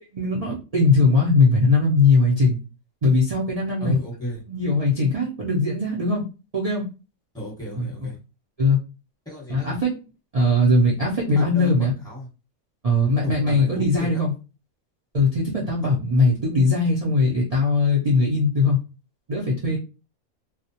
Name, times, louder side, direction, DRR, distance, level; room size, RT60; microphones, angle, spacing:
voice 1, 0.1-2.6 3.0-4.0 4.5-6.2 6.5-6.9 7.8-7.9 8.6-8.8 9.5-10.0 10.3-11.9 12.8-14.3 15.1-18.8 19.3-19.8, left 3 dB, 70° right, -5 dB, 0.3 m, -20 dB
voice 2, 3.8-4.4 7.3-8.2 9.2-9.8 11.3-12.3 13.2-14.2 15.8-15.9, left 1 dB, 5° left, -5 dB, 0.9 m, -33 dB
2.3 x 2.1 x 2.7 m, 0.32 s
omnidirectional pair, 1.5 m